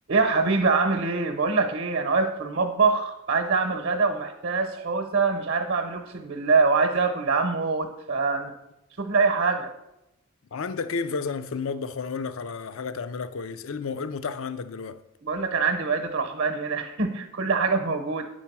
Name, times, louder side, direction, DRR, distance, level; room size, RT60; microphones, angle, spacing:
voice 1, 0.1-8.5 9.0-9.7 15.2-18.2, right 4 dB, 55° right, 0.8 m, -24 dB
voice 2, 10.5-15.0, left 5 dB, 70° left, 0.5 m, -32 dB
9.9 x 4.5 x 6.0 m
head